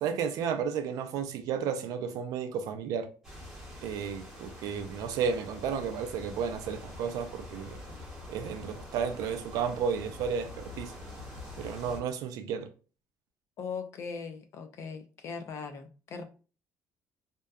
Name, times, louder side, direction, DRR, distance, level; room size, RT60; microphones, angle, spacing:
voice 1, 0.0-3.1 3.8-7.8 8.3-10.9 11.6-12.7, right 7 dB, 65° right, 0.4 m, -33 dB
sound 1, 3.2-12.0, left 1 dB, 10° right, 0.9 m, -45 dB
voice 2, 13.6-16.2, left 5 dB, 45° left, 0.4 m, -39 dB
2.6 x 2.2 x 2.2 m
cardioid pair, 160°, 7 cm